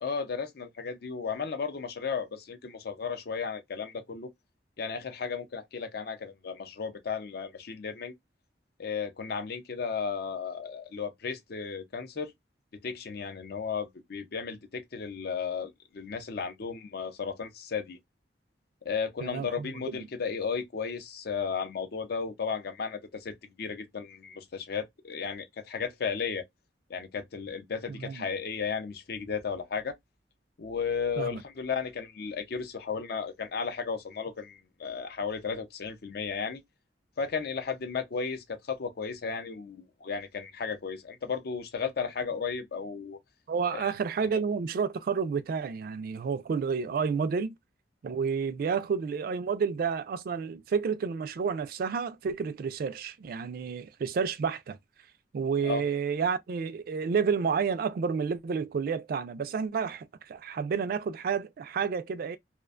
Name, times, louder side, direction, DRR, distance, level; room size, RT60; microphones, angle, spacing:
voice 1, 0.0-4.3 4.8-8.1 8.8-12.3 12.8-18.0 18.8-26.4 26.9-30.0 30.6-36.6 37.2-43.2 43.7-43.9 55.6-55.8, left 5 dB, 60° left, 0.5 m, -34 dB
voice 2, 19.2-20.1 27.9-28.2 31.2-31.4 43.5-47.5 48.0-54.8 55.3-62.4, right 6 dB, 55° right, 0.3 m, -30 dB
2.4 x 2.2 x 2.3 m
head